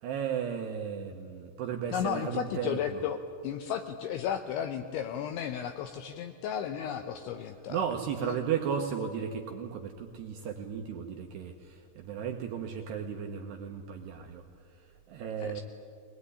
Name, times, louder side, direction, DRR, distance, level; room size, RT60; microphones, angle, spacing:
voice 1, 0.0-3.0 7.7-14.4 15.1-15.6, right 7 dB, 75° right, 3 dB, 2.6 m, -35 dB
voice 2, 1.9-3.2 3.4-7.9 8.2-8.3 15.4-15.6, left 9 dB, 75° left, 7 dB, 2.9 m, -34 dB
21.0 x 20.5 x 9.9 m, 2.4 s
omnidirectional pair, 6.0 m